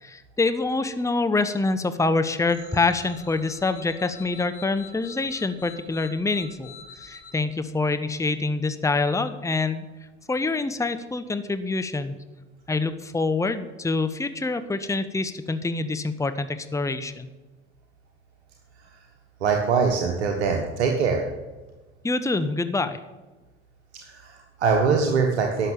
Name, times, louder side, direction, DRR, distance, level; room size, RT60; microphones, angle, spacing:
voice 1, 0.0-9.8 10.3-12.2 12.7-17.3 22.0-23.0, left 3 dB, 10° left, 11 dB, 0.9 m, -26 dB
sound 1, 2.5-7.3, left 7 dB, 45° left, 3.1 m, -46 dB
voice 2, 19.4-21.3 24.0-25.7, right 5 dB, 80° right, 2 dB, 1.4 m, -23 dB
12.0 x 6.6 x 9.1 m, 1.2 s
hypercardioid pair, 60°, 33 cm